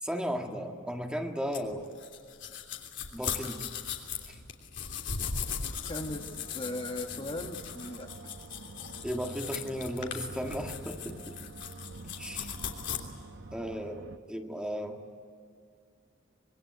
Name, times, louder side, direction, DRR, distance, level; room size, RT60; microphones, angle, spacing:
voice 1, 0.0-1.9 3.1-3.7 4.3-4.4 9.0-11.4 12.2-12.5 13.5-15.0, equal, 5° right, 3 dB, 1.8 m, -35 dB
sound 1, 1.5-13.0, left 7 dB, 65° left, 3.2 m, -38 dB
voice 2, 5.9-8.1, left 1 dB, 30° left, 3 dB, 1.7 m, -38 dB
sound 2, 6.0-14.2, right 3 dB, 65° right, 0.9 m, -47 dB
26.0 x 23.0 x 9.3 m, 2.3 s
head